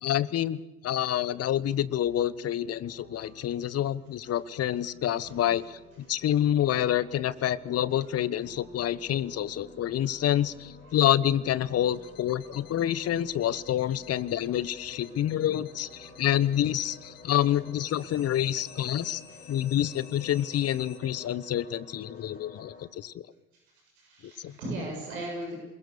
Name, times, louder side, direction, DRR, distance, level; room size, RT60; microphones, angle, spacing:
voice 1, 0.0-5.8 6.1-19.2 19.5-23.2 24.2-24.5, left 11 dB, 35° left, 18 dB, 1.1 m, -28 dB
sound 1, 2.0-17.7, right 2 dB, 30° right, 6.2 m, -56 dB
voice 2, 5.2-5.5 10.9-11.0 18.9-19.5 23.5-25.6, right 1 dB, 70° right, 1 dB, 7.1 m, -39 dB
sound 2, 7.3-22.9, left 4 dB, 15° left, 6.7 m, -52 dB
sound 3, 11.9-21.0, left 8 dB, 60° left, 2.4 m, -53 dB
28.0 x 21.5 x 6.9 m, 0.99 s
figure-of-eight pair, 60°, 43 cm